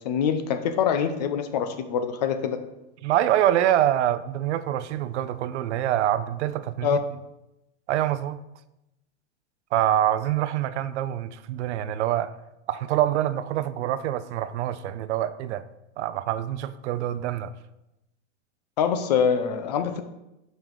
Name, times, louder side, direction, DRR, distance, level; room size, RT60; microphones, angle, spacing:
voice 1, 0.0-2.6 6.8-7.0 18.8-20.0, left 7 dB, 40° left, 0.4 m, -24 dB
voice 2, 3.0-7.0 7.9-8.4 9.7-12.3 12.7-15.6 16.0-17.5, right 12 dB, 75° right, 0.5 m, -25 dB
5.8 x 5.3 x 4.6 m
supercardioid pair, 175°, 35 cm